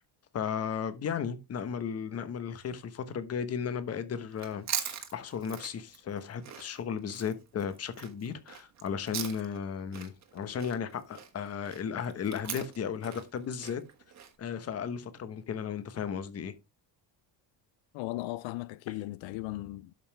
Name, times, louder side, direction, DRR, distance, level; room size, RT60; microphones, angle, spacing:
voice 1, 0.3-13.8 14.4-16.5, left 7 dB, 35° left, 1.1 m, -35 dB
Chewing mastication, 4.3-9.7 9.9-14.3, right 9 dB, 40° right, 1.6 m, -41 dB
voice 2, 17.9-19.9, left 18 dB, 80° left, 0.6 m, -37 dB
12.0 x 5.6 x 3.4 m
cardioid pair, 170°, 45 cm